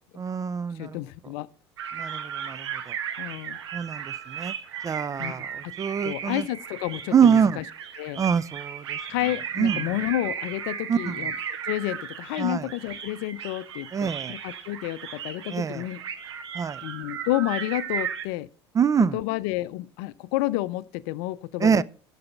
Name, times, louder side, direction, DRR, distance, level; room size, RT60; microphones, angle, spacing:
voice 1, 0.2-1.0 1.9-2.9 3.7-4.5 4.8-6.5 7.1-7.6 8.2-9.0 9.6-9.8 10.9-11.2 12.4-12.7 13.9-14.4 15.5-15.8 16.5-16.8 18.7-19.2 21.6-21.8, right 7 dB, 25° right, 0.4 m, -25 dB
voice 2, 0.8-1.5 3.2-3.6 5.2-5.3 5.6-5.7 6.0-7.6 8.0-8.2 9.1-11.4 11.6-16.0 16.8-18.5 19.0-21.8, left 16 dB, 60° left, 0.5 m, -30 dB
sound 1, 1.8-18.2, right 8 dB, 75° right, 1.1 m, -35 dB
11.5 x 4.1 x 6.7 m
hypercardioid pair, 70°, 14 cm